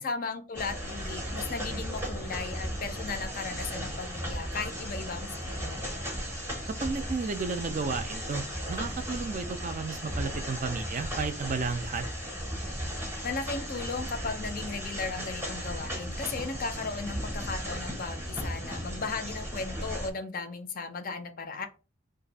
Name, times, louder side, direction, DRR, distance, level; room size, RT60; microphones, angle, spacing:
voice 1, 0.0-5.8 13.2-21.7, left 4 dB, 45° left, 0.5 m, -36 dB
sound 1, 0.6-20.1, equal, 10° right, 0.7 m, -36 dB
voice 2, 6.7-12.0, right 4 dB, 40° right, 0.4 m, -33 dB
2.6 x 2.4 x 4.0 m
head